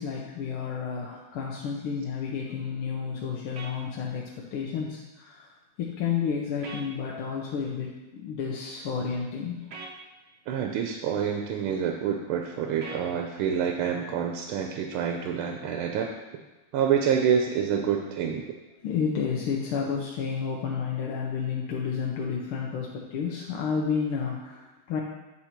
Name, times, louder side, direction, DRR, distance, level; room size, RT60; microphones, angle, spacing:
voice 1, 0.0-5.5 5.8-9.7 18.8-25.0, left 6 dB, 85° left, -3 dB, 1.7 m, -31 dB
sound 1, 3.6-3.7 6.6-6.9 9.7-9.9 12.8-13.1, right 3 dB, 55° right, 0.8 m, -40 dB
voice 2, 10.5-16.1 16.7-18.4, right 7 dB, 80° right, 3 dB, 1.5 m, -27 dB
8.7 x 4.2 x 4.4 m, 1.1 s
omnidirectional pair, 2.3 m